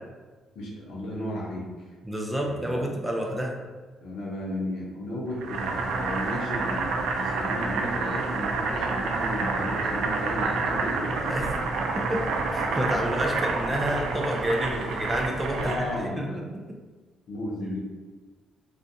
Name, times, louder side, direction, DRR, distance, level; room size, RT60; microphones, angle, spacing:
voice 1, 0.5-1.9 2.4-2.9 4.0-11.3 13.8-13.9 15.6-16.4 17.3-17.8, left 1 dB, 75° left, -3 dB, 0.7 m, -34 dB
voice 2, 2.1-3.6 11.3-11.5 12.1-16.3, equal, 15° right, 0 dB, 0.4 m, -29 dB
Boiling, 5.4-16.1, right 3 dB, 80° right, 0.3 m, -28 dB
2.5 x 2.2 x 2.6 m, 1.3 s
cardioid pair, 90°, 0 cm